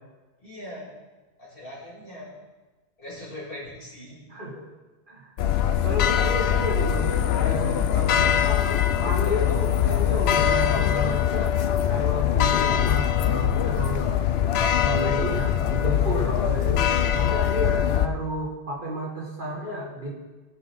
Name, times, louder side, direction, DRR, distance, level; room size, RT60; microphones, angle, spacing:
voice 1, 0.4-0.9 1.4-2.4 3.0-4.3, left 1 dB, 55° left, -7 dB, 3.4 m, -40 dB
voice 2, 4.3-4.7 5.1-5.3 5.8-11.5 11.8-14.1 14.7-20.1, equal, 50° right, -3 dB, 1.9 m, -31 dB
sound 1, 5.4-18.1, left 10 dB, 75° left, 0.8 m, -22 dB
16.0 x 5.3 x 4.2 m, 1.2 s
omnidirectional pair, 1.1 m